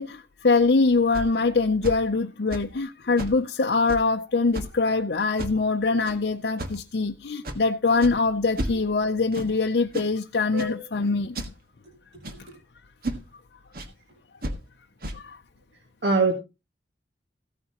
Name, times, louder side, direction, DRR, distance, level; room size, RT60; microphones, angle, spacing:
voice 1, 0.0-11.4 15.1-15.4, left 3 dB, 65° left, 0.6 m, -23 dB
sound 1, 0.6-0.7 1.1-1.3 1.8-2.0 2.5-2.8 3.2-3.4 3.9-4.1 4.5-4.7 5.4-5.7 6.0-6.2 6.6-6.9 7.4-7.6 8.0-8.2 8.6-9.0 9.3-9.5 9.9-10.1 10.6-10.8 11.3-11.5 12.2-12.5 13.0-13.3 13.7-13.9 14.4-14.6 15.0-15.2, right 1 dB, 55° right, 1.5 m, -33 dB
voice 2, 16.0-16.3, right 3 dB, 75° right, 2.0 m, -22 dB
15.5 x 9.5 x 2.9 m
head